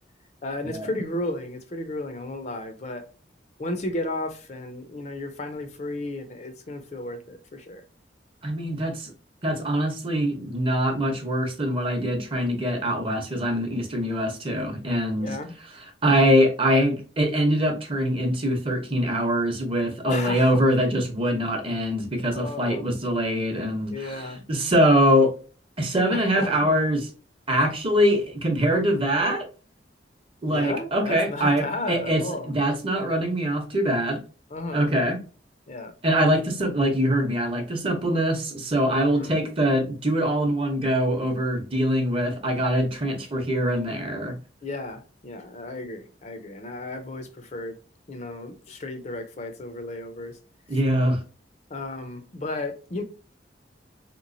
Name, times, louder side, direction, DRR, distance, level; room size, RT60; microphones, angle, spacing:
voice 1, 0.4-3.1 3.6-7.8 15.2-15.6 20.0-20.6 22.3-22.8 23.9-24.4 26.1-26.7 30.5-32.5 34.5-34.9 35.7-35.9 38.9-39.4 44.6-47.8 48.1-50.4 51.7-53.0, left 2 dB, 40° left, 0.5 m, -34 dB
voice 2, 8.4-9.1 9.4-15.3 16.0-25.3 25.8-27.1 27.5-29.5 30.4-34.2 34.7-35.2 36.0-44.3 50.7-51.2, equal, 30° right, 0.7 m, -23 dB
3.4 x 2.9 x 2.6 m
head